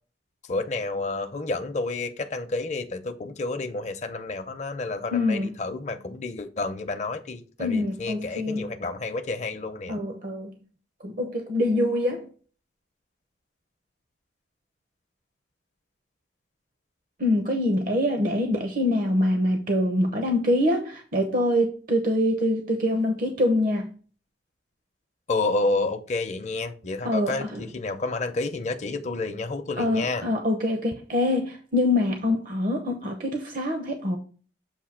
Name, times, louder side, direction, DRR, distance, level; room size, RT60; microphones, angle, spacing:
voice 1, 0.5-10.0 25.3-30.2, left 3 dB, 40° left, 0.7 m, -30 dB
voice 2, 5.1-5.6 7.6-8.7 9.9-10.6 11.0-12.3 17.2-23.9 27.0-27.6 29.8-34.2, left 1 dB, 50° right, 0.9 m, -25 dB
7.3 x 2.7 x 5.7 m
head